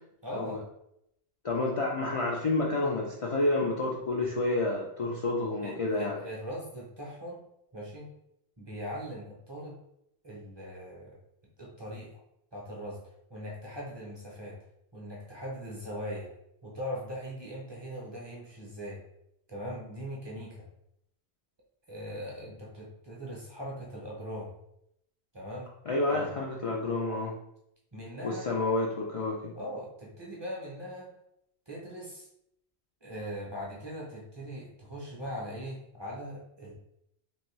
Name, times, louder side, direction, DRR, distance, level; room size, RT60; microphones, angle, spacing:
voice 1, 0.2-0.6 5.6-7.4 7.7-8.1 8.6-9.8 10.2-11.2 11.6-12.1 12.5-13.0 13.3-14.6 14.9-16.3 16.6-19.0 19.5-20.7 21.9-24.5 25.3-25.7 26.1-26.3 27.9-28.5 29.6-31.1 31.7-32.3 33.0-36.7, equal, 30° right, -4 dB, 0.6 m, -40 dB
voice 2, 1.4-6.2 25.9-27.4 28.2-29.5, left 2 dB, 50° left, -2 dB, 0.4 m, -29 dB
3.1 x 2.6 x 3.1 m, 0.78 s
omnidirectional pair, 1.1 m